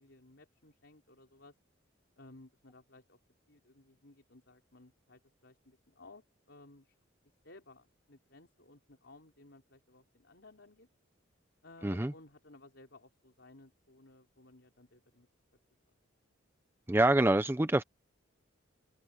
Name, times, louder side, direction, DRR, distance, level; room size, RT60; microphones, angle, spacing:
voice 1, 0.0-1.6 2.2-3.2 3.5-7.0 7.4-10.9 11.6-15.3, left 2 dB, 60° left, 4.1 m, -58 dB
voice 2, 16.9-17.8, right 1 dB, 10° right, 0.5 m, -26 dB
head